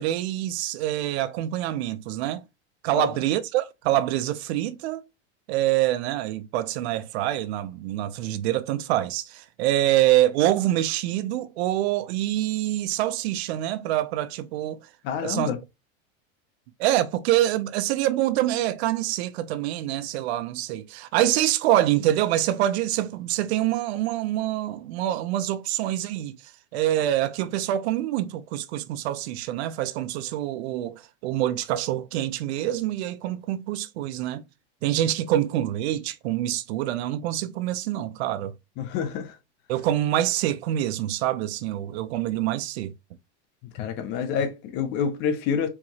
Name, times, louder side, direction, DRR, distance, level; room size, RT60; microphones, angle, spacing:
voice 1, 0.0-2.4 2.8-5.0 5.5-14.8 15.2-15.5 16.8-26.4 26.7-34.4 34.8-38.5 39.7-42.9, right 13 dB, 60° right, 0.5 m, -25 dB
voice 2, 15.0-15.6 38.8-39.4 43.7-45.7, left 7 dB, 30° left, 0.4 m, -27 dB
4.5 x 2.8 x 2.7 m
supercardioid pair, 160°, 36 cm